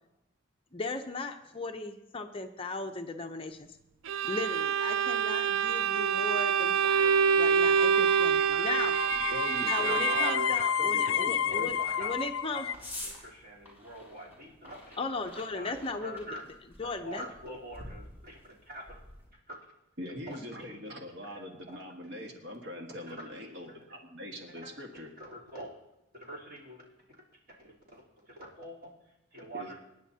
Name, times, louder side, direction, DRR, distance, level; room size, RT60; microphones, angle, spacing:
voice 1, 0.7-3.8 4.2-9.0 9.6-12.7 15.0-16.4 16.8-17.2, left 3 dB, 25° left, 5 dB, 0.6 m, -37 dB
Bowed string instrument, 4.1-10.6, right 7 dB, 80° right, 0.5 m, -26 dB
voice 2, 6.8-7.9 8.5-11.1 11.5-12.1 12.5-15.0 15.3-15.8 16.0-16.4 16.8-19.0 19.5-19.6 20.3-20.8 21.7-21.8 23.1-24.0 24.5-24.7 25.2-25.7 26.1-26.8 27.6-29.8, equal, 45° right, -4 dB, 3.5 m, -45 dB
sound 1, 7.6-12.7, left 9 dB, 80° left, 0.5 m, -31 dB
sound 2, 8.3-19.3, left 1 dB, 10° right, 4.6 m, -50 dB
voice 3, 9.2-10.1 10.8-11.7 20.0-25.1 29.5-29.7, left 1 dB, 60° right, 1 dB, 1.6 m, -42 dB
26.0 x 10.5 x 2.8 m, 0.90 s
head